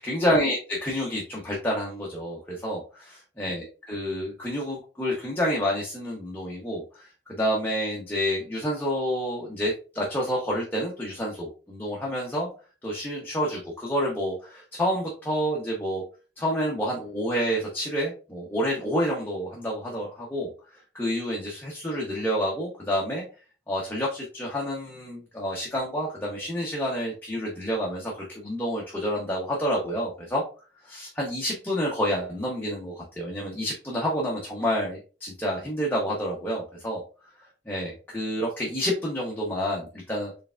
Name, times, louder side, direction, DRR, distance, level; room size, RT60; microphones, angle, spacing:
voice 1, 0.0-12.5 12.8-16.0 16.4-20.5 20.9-23.2 23.7-30.4 30.8-37.0 37.7-40.3, equal, 10° left, -4 dB, 0.8 m, -29 dB
4.7 x 3.3 x 2.4 m, 0.35 s
head